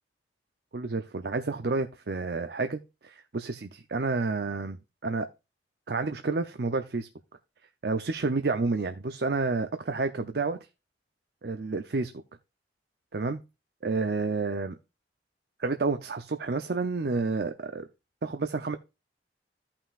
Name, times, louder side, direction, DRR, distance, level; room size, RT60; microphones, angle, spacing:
voice 1, 0.7-4.8 5.0-5.3 5.9-7.1 7.8-10.6 11.4-12.1 13.1-13.4 13.8-14.7 15.6-17.8 18.2-18.8, right 3 dB, 60° right, 8 dB, 0.6 m, -30 dB
14.5 x 5.8 x 2.5 m, 0.27 s
head